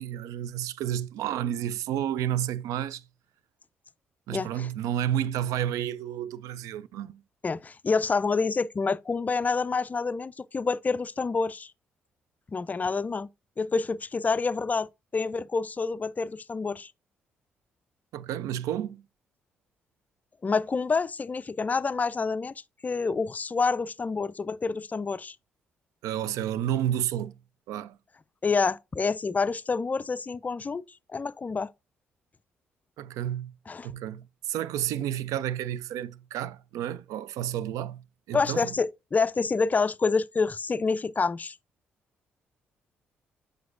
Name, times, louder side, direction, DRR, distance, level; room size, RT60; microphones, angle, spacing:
voice 1, 0.0-3.0 4.3-7.2 18.1-19.0 26.0-27.3 27.7-28.0 33.0-33.5 33.8-38.7, right 11 dB, 65° right, 0.3 m, -31 dB
voice 2, 4.3-4.7 7.4-11.7 12.5-13.3 13.6-16.9 20.4-22.5 22.8-25.4 28.4-30.8 31.1-31.7 33.7-33.9 38.3-41.6, left 4 dB, 25° left, 0.3 m, -27 dB
7.5 x 5.0 x 2.5 m
figure-of-eight pair, 45°, 6 cm